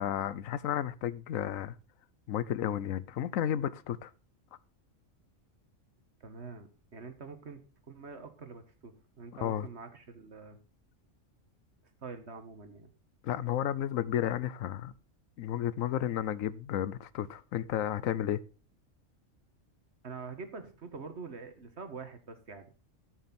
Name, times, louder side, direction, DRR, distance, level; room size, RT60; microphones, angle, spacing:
voice 1, 0.0-1.7 2.3-4.1 9.3-9.7 13.2-14.9 15.4-18.4, left 11 dB, 85° left, 1.1 m, -32 dB
voice 2, 6.2-10.6 12.0-12.9 20.0-22.7, right 4 dB, 55° right, 1.8 m, -45 dB
13.0 x 6.5 x 4.3 m
omnidirectional pair, 1.3 m